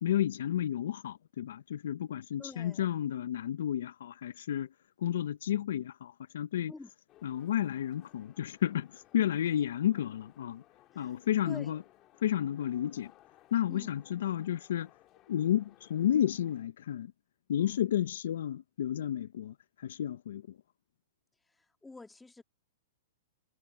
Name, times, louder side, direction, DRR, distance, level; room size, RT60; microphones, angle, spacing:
voice 1, 0.0-4.7 5.0-6.7 7.2-10.6 11.0-11.8 12.2-13.1 13.5-14.9 15.3-17.1 17.5-20.6, left 11 dB, 75° left, 0.6 m, -31 dB
voice 2, 2.4-2.9 6.7-6.9 10.9-11.2 11.4-11.8 13.7-13.9 17.6-17.8 21.5-22.4, left 3 dB, 5° left, 2.0 m, -48 dB
sound 1, 7.1-16.6, left 15 dB, 35° left, 1.9 m, -62 dB
hypercardioid pair, 140°, 0 cm